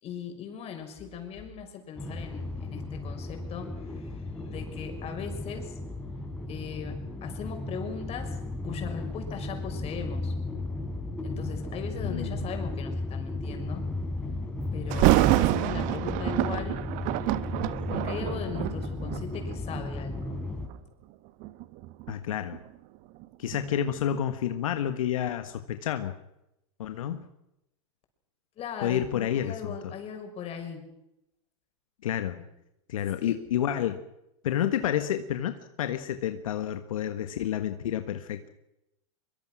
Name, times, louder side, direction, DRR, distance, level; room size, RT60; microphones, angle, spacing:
voice 1, 0.0-5.8 6.5-8.4 8.6-10.3 11.2-13.9 14.7-16.8 17.9-20.4 28.6-30.9 32.4-32.5 33.0-33.4, left 7 dB, 35° left, 5 dB, 5.9 m, -39 dB
sound 1, 2.0-20.7, left 2 dB, 5° left, 3.9 m, -35 dB
voice 2, 11.9-12.3 22.1-22.6 23.4-26.1 26.8-27.2 28.8-29.7 32.0-32.4 32.9-34.0 34.4-38.5, left 10 dB, 85° left, 8 dB, 1.5 m, -29 dB
Thunder, 14.9-19.9 20.5-20.8 21.4-24.2 24.6-24.7, right 16 dB, 50° right, 1.3 m, -27 dB
23.5 x 23.5 x 6.3 m, 0.87 s
hypercardioid pair, 115°, 17 cm